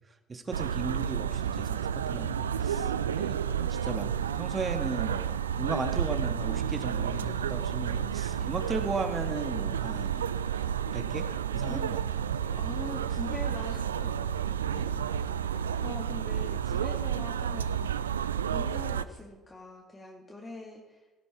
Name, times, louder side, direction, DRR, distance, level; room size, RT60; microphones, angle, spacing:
voice 1, 0.3-2.9 3.2-3.4 3.7-10.3 10.9-11.3 11.5-12.0 14.7-15.0, right 3 dB, 30° right, 7 dB, 1.8 m, -36 dB
sound 1, 0.5-19.0, right 8 dB, 80° right, 0.4 m, -31 dB
Run, 1.4-16.1 16.4-18.0 18.3-18.4 18.7-18.8 19.1-19.2, left 2 dB, 85° left, 4.4 m, -51 dB
voice 2, 12.5-14.1 15.8-18.2 18.5-21.2, left 2 dB, 20° left, -1 dB, 2.3 m, -42 dB
16.5 x 11.5 x 4.8 m, 1.2 s
figure-of-eight pair, 55°, 0 cm